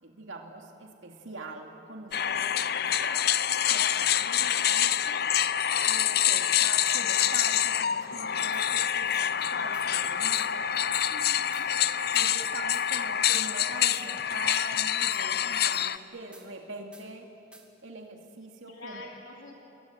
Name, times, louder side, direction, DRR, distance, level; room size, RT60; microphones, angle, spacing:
voice 1, 0.0-2.5 2.8-3.3 3.7-5.2 5.8-10.7 12.1-17.3 17.8-19.1, right 2 dB, 85° right, 2 dB, 2.4 m, -44 dB
voice 2, 2.1-3.0 11.1-11.7 18.7-19.5, left 2 dB, 85° left, -1 dB, 3.1 m, -48 dB
sound 1, 2.1-16.0, left 10 dB, 50° left, 0.6 m, -26 dB
sound 2, 8.5-8.7 9.1-9.3 9.7-9.9 10.3-10.5 10.9-11.1 11.5-11.7 12.1-12.3 12.7-12.9 13.3-13.5 13.9-14.1 14.5-14.6 15.1-15.2 15.7-15.9 16.3-16.5 16.9-17.1 17.5-17.6, right 2 dB, 5° right, 2.3 m, -51 dB
29.5 x 22.5 x 9.0 m, 2.8 s
head